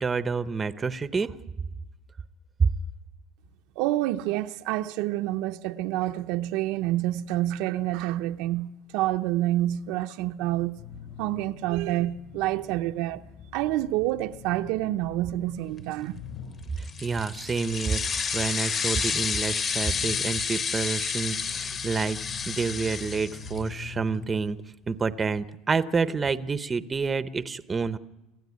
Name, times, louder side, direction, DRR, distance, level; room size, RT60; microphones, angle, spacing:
voice 1, 0.0-1.3 2.6-2.7 17.0-22.2 22.5-24.6 24.9-28.0, right 5 dB, 15° right, 0.7 m, -28 dB
voice 2, 3.8-10.8 11.2-13.2 13.5-16.2, right 15 dB, 65° right, 0.7 m, -28 dB
sound 1, 10.8-24.3, left 8 dB, 55° left, 5.7 m, -45 dB
sound 2, 16.8-23.8, left 6 dB, 30° left, 1.2 m, -30 dB
26.0 x 15.5 x 9.5 m
cardioid pair, 155°, 0 cm